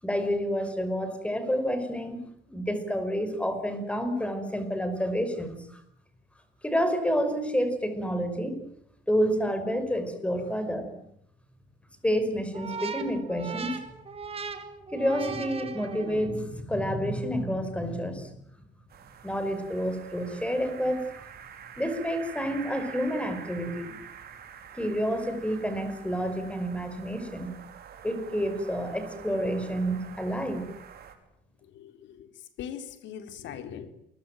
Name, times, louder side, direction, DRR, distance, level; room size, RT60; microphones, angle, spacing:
voice 1, 0.0-2.2 2.5-5.8 6.6-8.6 9.1-10.9 12.0-13.8 14.9-18.3 19.2-21.3 21.8-24.0 24.8-27.6 28.0-30.7, equal, 5° left, 9 dB, 5.6 m, -29 dB
sound 1, 12.5-16.4, right 5 dB, 30° right, 3.4 m, -38 dB
sound 2, 18.9-31.1, right 8 dB, 55° right, 5.2 m, -46 dB
voice 2, 31.6-33.9, left 8 dB, 80° left, 9 dB, 3.7 m, -41 dB
28.5 x 22.5 x 9.2 m, 0.74 s
cardioid pair, 135°, 19 cm